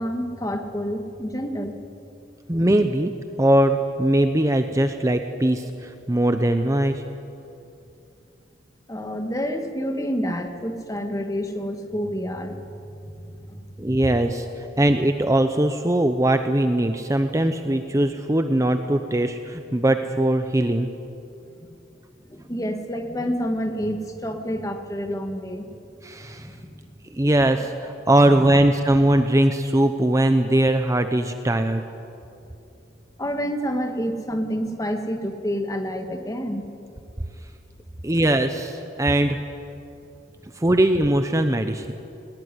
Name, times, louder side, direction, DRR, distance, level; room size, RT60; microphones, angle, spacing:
voice 1, 0.0-1.8 8.9-13.7 22.3-25.7 26.2-26.9 33.2-36.7, equal, 20° left, 6 dB, 1.7 m, -29 dB
voice 2, 2.5-3.1 3.4-7.0 13.8-20.9 26.0-26.5 27.1-31.8 38.0-39.4 40.6-41.9, right 1 dB, 15° right, 7 dB, 0.7 m, -20 dB
19.5 x 19.0 x 9.8 m, 2.7 s
head